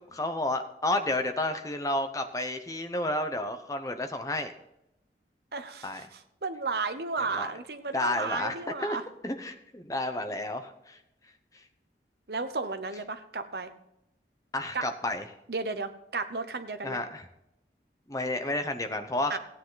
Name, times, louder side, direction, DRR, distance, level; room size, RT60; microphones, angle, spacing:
voice 1, 0.1-4.5 5.8-6.0 7.3-7.5 7.9-8.5 8.8-9.0 9.2-11.0 14.5-15.2 16.8-17.3 18.1-19.4, left 2 dB, 20° left, 7 dB, 0.9 m, -31 dB
voice 2, 5.5-9.0 12.3-13.7 14.7-14.9 15.5-17.0 19.3-19.4, right 4 dB, 65° right, 10 dB, 0.9 m, -33 dB
15.5 x 9.2 x 4.0 m, 0.82 s
head